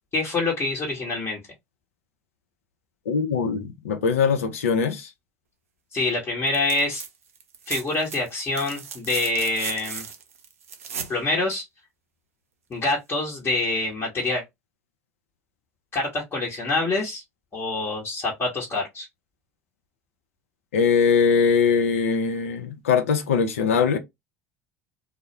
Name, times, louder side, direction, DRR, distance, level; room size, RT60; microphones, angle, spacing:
voice 1, 0.1-1.4 5.9-7.0 7.7-10.0 11.1-11.6 12.7-14.4 15.9-17.2 17.5-19.1, left 2 dB, 30° left, 1.0 m, -26 dB
voice 2, 3.1-5.1 20.7-24.0, left 6 dB, 80° left, 0.5 m, -21 dB
sound 1, 6.5-7.1 7.4-11.2 12.8-12.9, right 7 dB, 85° right, 0.4 m, -36 dB
2.2 x 2.1 x 2.7 m
hypercardioid pair, 70°, 7 cm